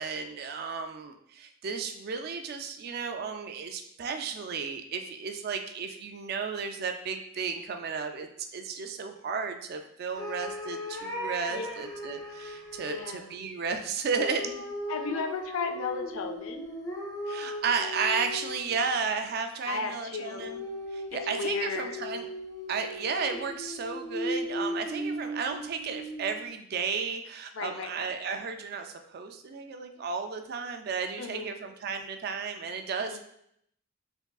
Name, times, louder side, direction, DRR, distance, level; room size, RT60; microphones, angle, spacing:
voice 1, 0.0-14.6 17.3-20.6 20.9-22.3 22.7-33.2, right 5 dB, 50° right, 6 dB, 0.3 m, -33 dB
sound 1, 10.1-13.1 14.2-18.9 20.4-26.5, equal, 15° left, 0.6 m, -37 dB
voice 2, 12.9-13.3 14.9-16.7 19.6-20.4 21.1-21.9 27.6-27.9 31.2-31.5 33.0-33.2, left 4 dB, 85° left, 6 dB, 0.4 m, -34 dB
3.5 x 2.9 x 2.3 m, 0.71 s
head